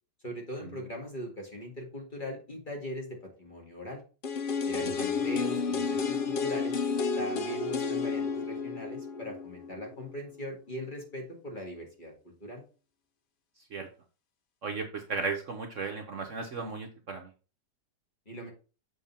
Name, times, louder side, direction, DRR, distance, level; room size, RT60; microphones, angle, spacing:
voice 1, 0.2-4.0 4.7-6.8 7.2-12.1 12.4-12.6 18.3-18.5, equal, 25° left, 0 dB, 2.3 m, -40 dB
sound 1, 4.2-10.1 10.4-10.5, left 5 dB, 80° left, 0.4 m, -31 dB
voice 2, 14.6-17.3, right 4 dB, 50° right, 3 dB, 1.1 m, -35 dB
7.1 x 3.8 x 5.7 m, 0.35 s
omnidirectional pair, 1.8 m